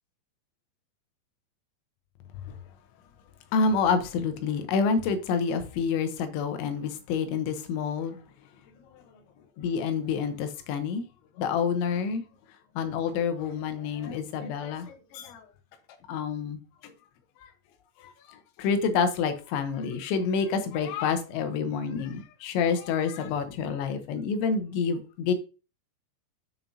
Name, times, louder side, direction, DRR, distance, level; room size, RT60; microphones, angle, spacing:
voice 1, 3.5-8.2 8.8-9.2 9.6-11.1 11.4-12.2 12.8-15.5 16.1-16.9 17.4-17.5 18.0-25.3, left 5 dB, 85° left, 3.3 m, -28 dB
7.5 x 7.0 x 2.7 m
omnidirectional pair, 5.2 m